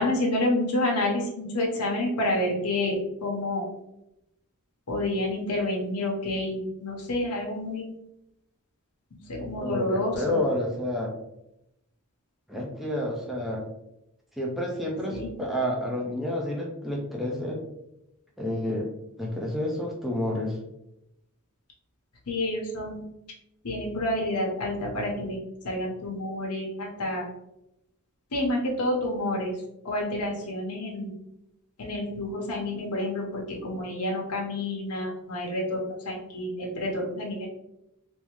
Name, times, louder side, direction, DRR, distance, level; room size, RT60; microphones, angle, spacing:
voice 1, 0.0-3.6 4.9-7.8 9.3-10.4 15.1-15.3 22.3-23.0 23.6-25.4 25.6-27.3 28.3-29.5 29.8-31.1 31.8-37.5, left 1 dB, 90° left, -1 dB, 0.9 m, -29 dB
voice 2, 9.6-11.1 12.5-13.6 14.4-17.6 18.4-18.8 19.2-20.6, left 1 dB, ahead, -2 dB, 0.5 m, -29 dB
3.5 x 2.7 x 3.0 m, 0.85 s
head